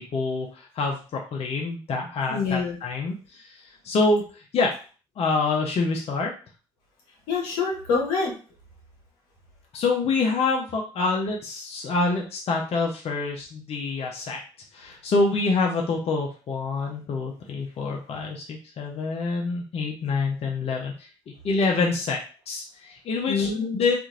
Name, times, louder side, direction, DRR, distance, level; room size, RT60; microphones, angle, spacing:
voice 1, 0.0-3.5 3.8-4.2 4.5-4.7 5.2-6.3 9.7-14.4 14.7-21.1 21.4-22.2 22.5-24.0, left 3 dB, 50° left, 0 dB, 0.6 m, -26 dB
voice 2, 2.3-2.8 7.3-8.3 23.3-23.8, left 5 dB, 80° left, -1 dB, 0.9 m, -26 dB
2.8 x 2.5 x 2.5 m, 0.36 s
hypercardioid pair, 45°, 13 cm